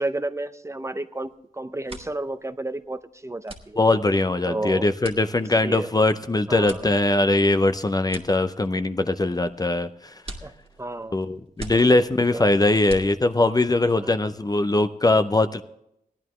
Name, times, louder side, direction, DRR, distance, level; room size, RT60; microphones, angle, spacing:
voice 1, 0.0-3.8 4.4-4.9 5.4-5.9 6.5-6.9 10.4-10.5 10.8-11.2 11.7-12.0 12.3-12.5 14.0-14.1, right 2 dB, 20° right, 10 dB, 0.6 m, -32 dB
sound 1, 1.2-1.4 1.7-13.6, right 2 dB, 40° right, 1.7 m, -44 dB
voice 2, 3.8-10.1 11.1-15.6, left 2 dB, 25° left, 10 dB, 0.5 m, -21 dB
17.5 x 11.0 x 3.1 m, 0.77 s
wide cardioid pair, 100°, 15 cm